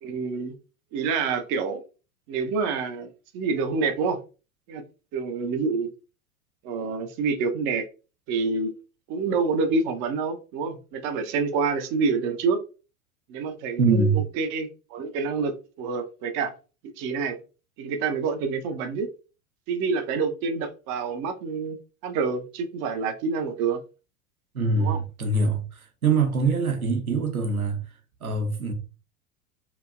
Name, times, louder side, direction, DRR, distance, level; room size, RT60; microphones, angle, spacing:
voice 1, 0.0-0.5 0.9-1.8 2.3-3.1 3.3-4.2 4.7-4.8 5.1-5.9 6.6-7.8 8.3-8.7 9.1-12.6 13.3-14.1 14.3-16.5 16.8-17.4 17.8-19.1 19.7-21.8 22.0-23.8 24.8-25.0, right 4 dB, 30° right, 0.5 m, -27 dB
voice 2, 13.8-14.2 24.5-27.8 28.2-28.7, right 4 dB, 85° right, 0.8 m, -24 dB
2.9 x 2.7 x 2.3 m
figure-of-eight pair, 85°, 43 cm